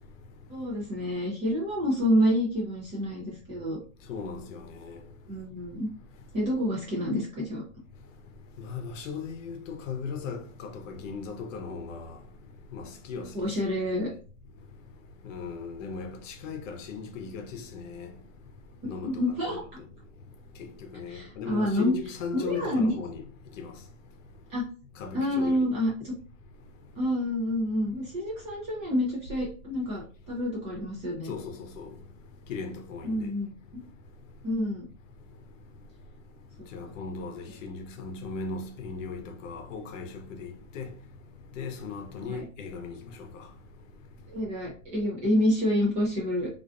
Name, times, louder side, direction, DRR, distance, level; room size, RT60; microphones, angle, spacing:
voice 1, 0.5-3.8 5.3-5.9 6.3-7.6 13.3-14.1 18.8-19.6 21.1-21.9 22.3-22.9 24.5-24.6 25.1-26.1 27.0-31.3 33.0-33.5 34.4-34.9 42.3-42.4 44.3-46.5, equal, 20° right, 0.3 m, -28 dB
voice 2, 4.1-5.0 8.6-12.2 12.7-13.5 15.2-18.1 18.8-19.1 19.5-19.6 20.9-23.2 23.6-23.7 25.0-25.6 31.3-31.9 32.5-33.3 36.7-40.9 41.6-42.9 43.3-43.4, left 5 dB, 65° left, 0.7 m, -37 dB
2.5 x 2.4 x 2.2 m
hypercardioid pair, 135°, 40 cm